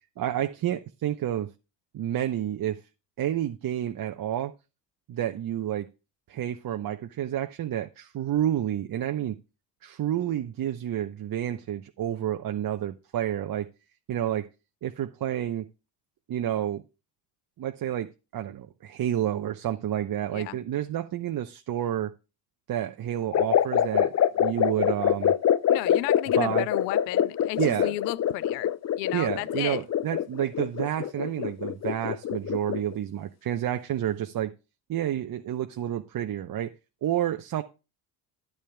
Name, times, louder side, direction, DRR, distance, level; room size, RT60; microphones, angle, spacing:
voice 1, 0.2-1.5 1.9-2.8 3.2-4.5 5.1-5.9 6.3-9.4 9.8-13.7 14.1-14.5 14.8-15.7 16.3-16.8 17.6-22.1 22.7-24.1 24.4-25.3 26.4-26.7 27.6-28.0 29.1-34.5 34.9-36.7 37.0-37.6, right 11 dB, 45° right, 0.9 m, -29 dB
sound 1, 23.3-32.9, left 9 dB, 35° left, 0.6 m, -25 dB
voice 2, 25.7-28.7 29.0-29.8, left 18 dB, 85° left, 0.6 m, -33 dB
13.0 x 9.8 x 2.3 m
hypercardioid pair, 65°, 50 cm